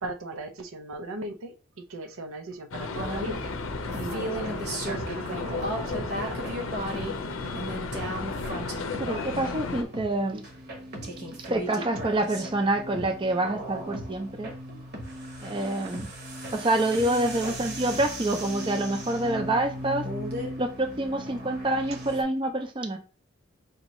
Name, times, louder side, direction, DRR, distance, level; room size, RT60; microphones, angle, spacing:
voice 1, 0.0-3.5 4.0-6.5 17.5-17.6, right 1 dB, 85° right, 7 dB, 0.6 m, -38 dB
sound 1, 2.7-9.8, left 4 dB, 80° left, 0.6 m, -34 dB
sound 2, 3.0-22.2, right 1 dB, 50° right, 1.0 m, -36 dB
voice 2, 9.0-10.5 11.5-14.5 15.4-16.1 16.5-20.0 20.6-23.0, right 1 dB, 25° right, 6 dB, 0.4 m, -27 dB
5.1 x 2.7 x 3.1 m, 0.38 s
head